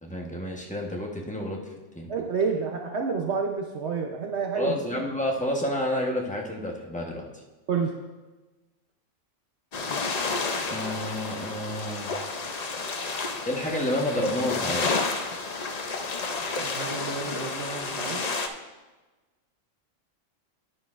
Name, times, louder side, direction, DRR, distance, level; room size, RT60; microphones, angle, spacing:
voice 1, 0.0-1.6 1.9-2.1 4.5-7.3 10.6-12.1 13.4-15.1, left 1 dB, 5° left, -1 dB, 0.9 m, -30 dB
voice 2, 2.1-4.8 7.7-7.9 16.6-18.2, right 5 dB, 60° right, 2 dB, 1.0 m, -29 dB
sound 1, 9.7-18.5, left 4 dB, 45° left, 0.5 m, -31 dB
10.0 x 9.7 x 2.5 m, 1.2 s
omnidirectional pair, 1.4 m